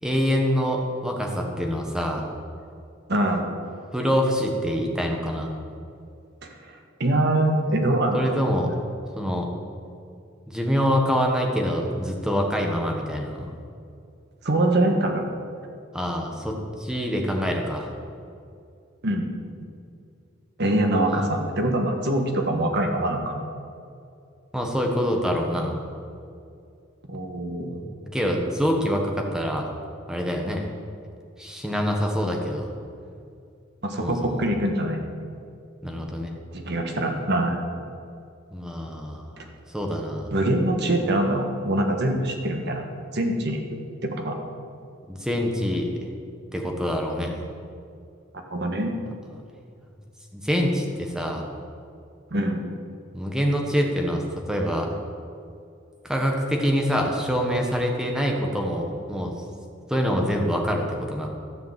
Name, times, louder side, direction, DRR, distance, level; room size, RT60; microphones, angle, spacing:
voice 1, 0.0-2.2 3.9-5.5 8.1-8.7 9.2-9.5 10.5-13.5 15.9-17.9 21.0-21.3 24.5-25.8 27.1-27.2 27.7-29.7 30.1-30.6 31.4-32.7 34.0-34.4 35.8-36.3 38.5-39.4 39.7-40.3 45.0-45.9 46.5-47.3 50.3-51.4 53.1-55.0 56.0-59.3 59.9-61.3, equal, 5° right, 1 dB, 1.5 m, -25 dB
voice 2, 3.1-3.5 7.0-8.4 14.4-15.3 19.0-19.3 20.6-23.4 27.1-27.8 33.8-35.0 36.5-37.6 39.4-39.5 40.3-42.8 43.1-43.6 44.0-44.4 48.5-48.9 52.3-52.7, right 1 dB, 55° right, 3 dB, 1.6 m, -24 dB
13.0 x 6.9 x 7.6 m, 2.5 s
head